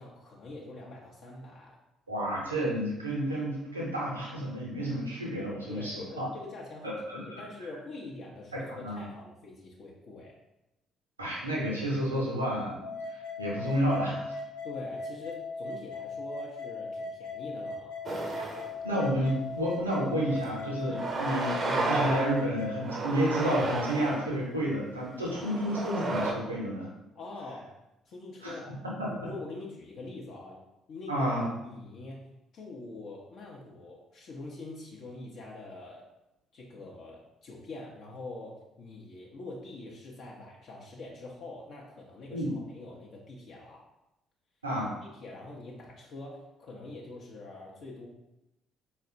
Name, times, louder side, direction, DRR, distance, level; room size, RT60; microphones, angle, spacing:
voice 1, 0.0-1.8 5.7-10.3 14.6-18.0 20.9-21.2 25.2-25.4 27.1-27.7 28.1-28.8 29.1-30.6 30.9-31.3 31.6-36.1 36.5-43.8 45.1-48.1, left 2 dB, 55° left, -3 dB, 0.5 m, -44 dB
voice 2, 2.1-6.3 6.8-7.4 8.7-9.1 11.2-14.2 18.8-26.9 28.4-28.5 29.0-29.3 31.1-31.5 42.3-42.5 44.6-44.9, equal, 90° right, -4 dB, 0.5 m, -31 dB
sound 1, 12.8-22.8, left 3 dB, 85° left, 0.7 m, -39 dB
sound 2, 18.1-18.7 19.2-19.3 20.4-20.5 20.9-22.4 22.8-24.2 25.1-26.3, right 2 dB, 40° right, 0.5 m, -32 dB
4.1 x 2.1 x 2.5 m, 0.92 s
figure-of-eight pair, 45°, 0 cm